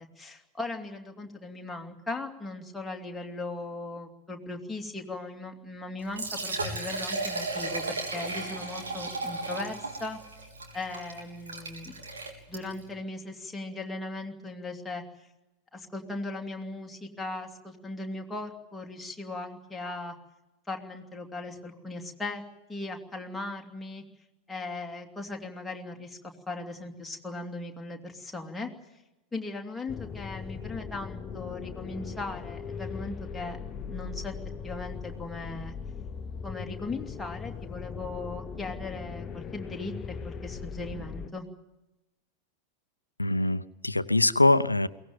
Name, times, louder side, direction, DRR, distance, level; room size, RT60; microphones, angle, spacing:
voice 1, 0.2-10.2 10.7-11.9 12.5-15.0 15.7-20.1 20.7-22.4 22.7-24.0 24.5-26.2 26.5-28.7 29.3-33.6 33.9-34.3 34.6-35.7 36.4-41.5, left 2 dB, 5° left, 1 dB, 2.7 m, -38 dB
Liquid, 6.0-12.9, right 3 dB, 70° right, 3.8 m, -35 dB
sound 1, 29.9-41.3, left 6 dB, 25° left, 0.9 m, -39 dB
voice 2, 43.2-44.9, left 2 dB, 85° left, 15 dB, 0.7 m, -23 dB
22.5 x 18.0 x 9.2 m, 0.99 s
figure-of-eight pair, 90°, 0 cm